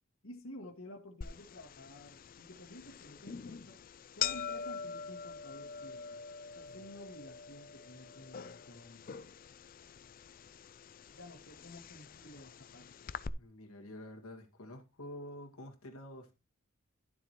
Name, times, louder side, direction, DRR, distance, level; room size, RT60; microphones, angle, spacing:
voice 1, 0.2-3.8 4.2-6.2 6.6-9.1 11.1-13.1, left 1 dB, 70° left, 1.9 m, -52 dB
sound 1, 1.2-13.3, left 7 dB, 40° left, 0.4 m, -44 dB
voice 2, 13.4-16.3, left 1 dB, 90° left, 2.0 m, -48 dB
12.0 x 7.5 x 3.0 m
head